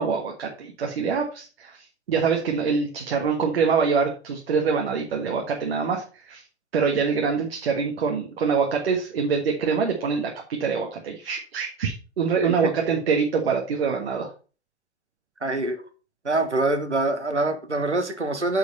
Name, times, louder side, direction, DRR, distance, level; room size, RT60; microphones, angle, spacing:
voice 1, 0.0-1.7 2.1-6.4 6.7-14.3, right 5 dB, 60° right, 2 dB, 1.5 m, -25 dB
voice 2, 12.4-12.7 15.4-15.8 16.2-18.6, right 2 dB, 90° right, 7 dB, 1.5 m, -25 dB
8.2 x 4.8 x 5.4 m, 0.36 s
figure-of-eight pair, 115°, 34 cm